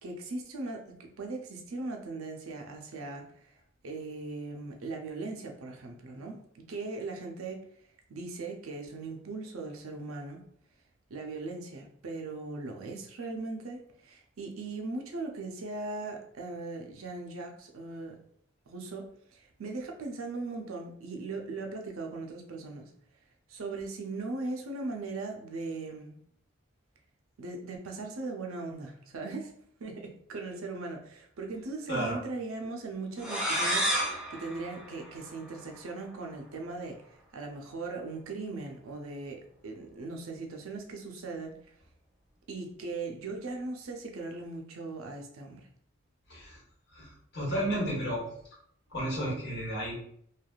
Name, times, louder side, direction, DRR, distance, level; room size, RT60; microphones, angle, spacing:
voice 1, 0.0-3.6 3.8-7.7 8.1-10.4 11.1-18.2 18.7-22.9 23.5-26.2 27.4-29.5 29.8-41.7 42.5-45.7, right 3 dB, 80° right, 2 dB, 0.5 m, -39 dB
voice 2, 31.9-32.2 46.3-46.6 46.9-48.2 48.9-49.9, right 1 dB, 55° left, -5 dB, 1.3 m, -32 dB
sound 1, 33.2-35.8, equal, 5° right, 0.5 m, -31 dB
3.3 x 2.3 x 2.3 m, 0.65 s
head